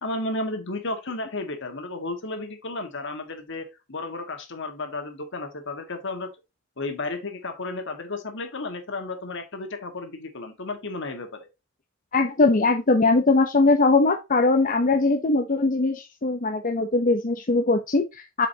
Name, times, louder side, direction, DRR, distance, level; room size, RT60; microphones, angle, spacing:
voice 1, 0.0-6.3 6.8-11.5, left 2 dB, 60° left, 1.8 m, -33 dB
voice 2, 12.1-18.5, left 3 dB, 40° left, 0.7 m, -21 dB
8.0 x 5.0 x 2.8 m
head